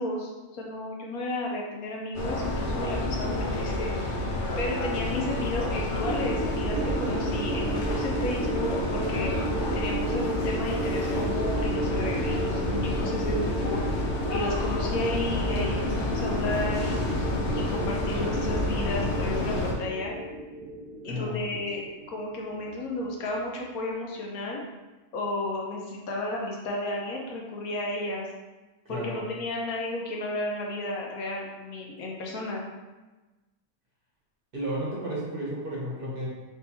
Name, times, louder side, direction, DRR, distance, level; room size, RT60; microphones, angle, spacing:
voice 1, 0.0-3.9 4.6-9.3 9.7-13.8 14.3-17.0 17.5-20.1 21.0-24.6 25.1-28.2 28.9-32.6, left 1 dB, 80° left, -1 dB, 1.2 m, -33 dB
sound 1, 2.1-19.7, left 2 dB, 60° left, 0.9 m, -29 dB
sound 2, 6.0-23.0, right 2 dB, 80° right, 0.4 m, -34 dB
voice 2, 21.0-21.4 28.8-29.2 34.5-36.3, equal, 45° right, -5 dB, 1.0 m, -33 dB
4.1 x 3.4 x 2.9 m, 1.2 s
omnidirectional pair, 1.6 m